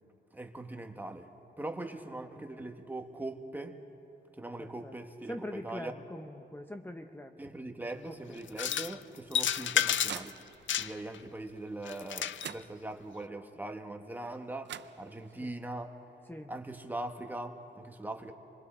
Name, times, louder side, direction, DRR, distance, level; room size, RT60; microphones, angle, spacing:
voice 1, 0.3-1.3 1.6-3.8 4.4-5.9 7.4-10.3 10.8-16.0 16.5-18.3, right 2 dB, 10° right, 5 dB, 1.1 m, -41 dB
voice 2, 2.0-2.5 4.6-7.5 8.0-8.5 15.4-15.6 16.2-16.5, left 1 dB, 10° left, 5 dB, 0.7 m, -44 dB
sound 1, 8.5-8.9 9.3-10.3 10.7-11.2 11.9-12.5, left 9 dB, 85° left, 0.5 m, -30 dB
sound 2, 9.2-10.9 12.0-12.1 12.4-13.2 14.3-14.4 14.7-15.5, right 9 dB, 70° right, 0.5 m, -46 dB
27.0 x 23.0 x 4.3 m, 2.9 s
wide cardioid pair, 140°, 19 cm